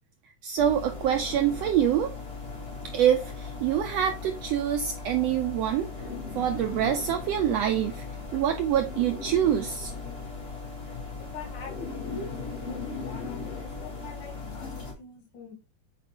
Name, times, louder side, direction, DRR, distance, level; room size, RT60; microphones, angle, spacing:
voice 1, 0.4-2.1 2.9-5.9 6.3-8.0 8.3-9.9, right 10 dB, 80° right, 1.5 m, -25 dB
sound 1, 0.6-14.9, left 4 dB, 45° left, 0.7 m, -38 dB
voice 2, 11.2-12.3 12.6-15.5, left 3 dB, 70° left, 3.4 m, -43 dB
7.5 x 4.2 x 3.5 m
omnidirectional pair, 3.5 m